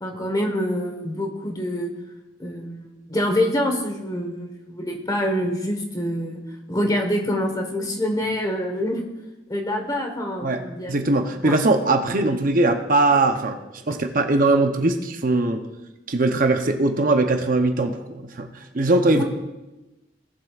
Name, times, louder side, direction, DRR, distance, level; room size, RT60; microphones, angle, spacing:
voice 1, 0.0-1.9 2.4-6.4 6.7-9.0 9.5-10.9 11.4-11.6 19.2-19.3, equal, 20° left, 3 dB, 1.2 m, -26 dB
voice 2, 10.9-13.6 13.9-15.6 16.1-18.5 18.7-19.2, right 2 dB, 45° right, 6 dB, 0.7 m, -20 dB
17.5 x 7.6 x 2.4 m, 1.0 s
head